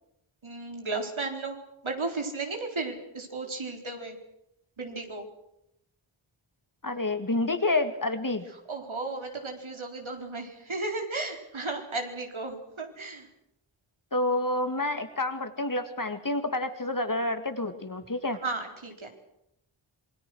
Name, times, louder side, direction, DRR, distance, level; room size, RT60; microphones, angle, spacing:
voice 1, 0.4-1.6 1.8-4.2 4.8-5.2 8.7-13.3 18.4-19.1, right 3 dB, 75° right, 3 dB, 4.4 m, -34 dB
voice 2, 6.8-8.4 14.1-18.4, left 2 dB, 40° left, 8 dB, 2.3 m, -28 dB
27.0 x 22.0 x 6.4 m, 0.81 s
wide cardioid pair, 55°, 48 cm